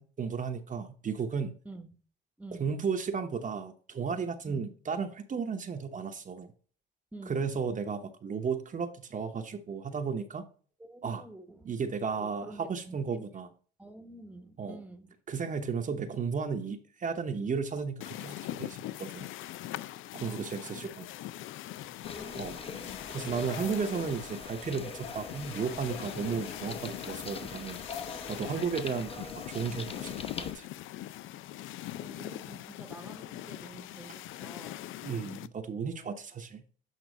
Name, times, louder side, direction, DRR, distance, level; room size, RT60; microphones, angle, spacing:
voice 1, 0.0-1.5 2.6-6.5 7.3-10.4 11.0-11.3 11.6-13.5 14.6-14.8 15.3-19.3 20.1-21.1 22.3-22.6 23.1-27.8 28.3-30.7 35.0-36.6, right 5 dB, 40° right, 0.9 m, -34 dB
voice 2, 1.6-2.0 2.4-2.7 4.4-4.7 7.1-7.5 10.8-13.4 13.8-15.2 20.2-20.9 22.1-23.0 31.5-31.6 32.0-35.0, right 2 dB, 5° right, 1.0 m, -49 dB
sound 1, 18.0-35.5, left 14 dB, 80° left, 0.4 m, -42 dB
sound 2, 22.0-30.5, left 4 dB, 30° left, 0.9 m, -43 dB
8.3 x 4.0 x 3.9 m
cardioid pair, 90°, 20 cm